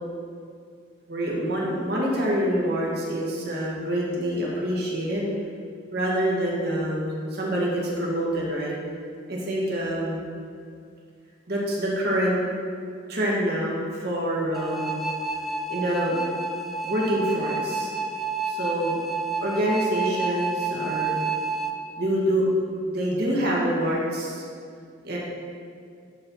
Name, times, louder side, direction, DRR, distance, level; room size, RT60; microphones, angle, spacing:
voice 1, 1.1-5.3 5.9-8.7 9.3-10.2 11.5-12.4 13.1-15.0 15.7-16.2 16.8-17.9 18.4-19.0 19.4-21.2 22.0-22.5 22.8-24.4 25.0-25.2, equal, 55° right, -4 dB, 2.0 m, -26 dB
sound 1, 14.5-21.7, right 3 dB, ahead, 0.4 m, -29 dB
12.5 x 4.5 x 5.6 m, 2.3 s
head